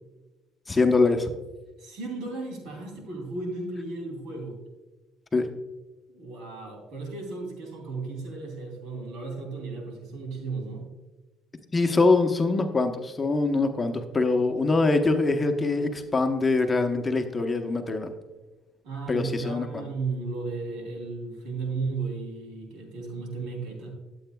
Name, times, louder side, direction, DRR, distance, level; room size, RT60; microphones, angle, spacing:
voice 1, 0.7-1.3 5.3-5.5 11.7-18.1 19.1-19.8, left 3 dB, 20° left, 5 dB, 0.9 m, -23 dB
voice 2, 1.8-4.6 6.1-10.9 18.8-23.9, right 3 dB, 75° right, 2 dB, 3.0 m, -34 dB
12.5 x 7.9 x 2.3 m, 1.1 s
cardioid pair, 105°, 0 cm